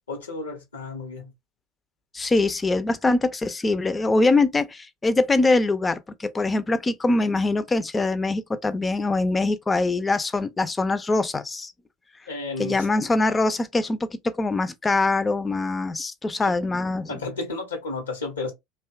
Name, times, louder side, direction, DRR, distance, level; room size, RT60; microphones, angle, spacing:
voice 1, 0.1-1.3 12.3-12.9 17.1-18.5, left 3 dB, 85° left, 0.8 m, -32 dB
voice 2, 2.1-11.7 12.6-14.0 14.2-17.2, left 2 dB, 20° left, 0.4 m, -23 dB
2.7 x 2.2 x 2.3 m
figure-of-eight pair, 75°, 0 cm